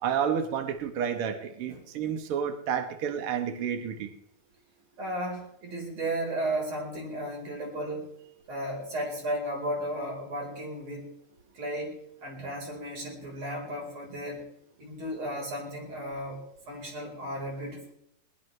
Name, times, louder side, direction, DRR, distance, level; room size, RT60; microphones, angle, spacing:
voice 1, 0.0-4.1, right 8 dB, 80° right, 7 dB, 1.2 m, -30 dB
voice 2, 5.0-8.1 8.5-11.1 11.5-14.4 14.8-16.4 16.7-17.8, right 1 dB, 45° right, 0 dB, 5.4 m, -34 dB
21.0 x 20.0 x 3.3 m, 0.75 s
omnidirectional pair, 4.3 m